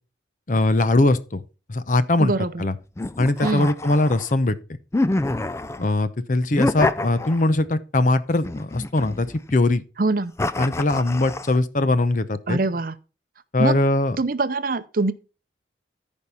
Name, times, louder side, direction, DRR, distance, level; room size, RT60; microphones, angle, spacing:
voice 1, 0.5-1.4 1.7-2.3 2.6-2.7 3.2-4.6 5.8-9.8 10.6-12.6 13.5-14.2, left 2 dB, 45° left, 0.7 m, -21 dB
voice 2, 2.2-2.6 3.4-3.7 10.0-10.3 12.5-12.9 13.6-13.8 14.2-15.1, right 3 dB, 50° right, 0.6 m, -23 dB
sound 1, 3.0-4.3 4.9-5.9 6.5-7.7 8.4-9.5 10.4-11.6, left 2 dB, 15° left, 0.4 m, -27 dB
14.5 x 5.3 x 4.2 m
head